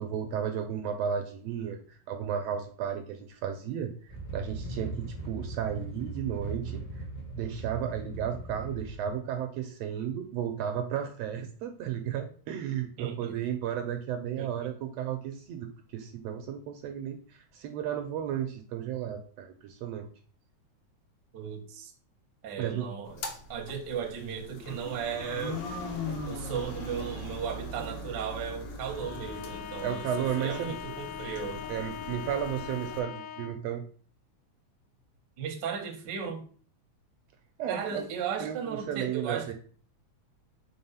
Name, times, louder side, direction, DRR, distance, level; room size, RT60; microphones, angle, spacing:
voice 1, 0.0-7.1 7.3-20.1 22.6-22.9 29.8-30.8 31.7-33.8 37.6-39.5, right 9 dB, 75° right, 6 dB, 1.6 m, -34 dB
sound 1, 4.1-9.1, right 3 dB, 35° left, 0.7 m, -39 dB
voice 2, 13.0-13.4 14.4-14.7 21.3-21.9 22.4-23.2 23.5-25.6 26.3-31.6 35.4-36.4 37.7-39.5, right 7 dB, 60° right, 3 dB, 1.2 m, -36 dB
sound 2, 23.1-33.0, left 2 dB, 60° left, 1.9 m, -40 dB
Bowed string instrument, 28.9-33.7, left 8 dB, 80° left, 1.6 m, -41 dB
4.7 x 4.1 x 5.5 m, 0.43 s
omnidirectional pair, 3.3 m